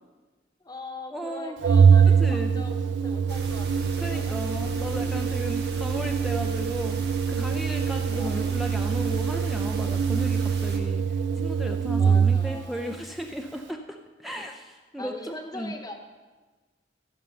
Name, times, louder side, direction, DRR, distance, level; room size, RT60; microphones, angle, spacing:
voice 1, 0.6-5.2 8.0-8.6 12.0-13.0 15.0-15.9, left 1 dB, 20° left, 5 dB, 1.0 m, -41 dB
voice 2, 1.1-1.6 2.2-2.5 4.0-15.7, equal, ahead, 3 dB, 0.5 m, -35 dB
Organ, 1.6-12.6, right 6 dB, 90° right, 0.4 m, -23 dB
sound 1, 3.3-10.8, right 2 dB, 65° right, 1.2 m, -40 dB
14.0 x 5.5 x 5.6 m, 1.3 s
head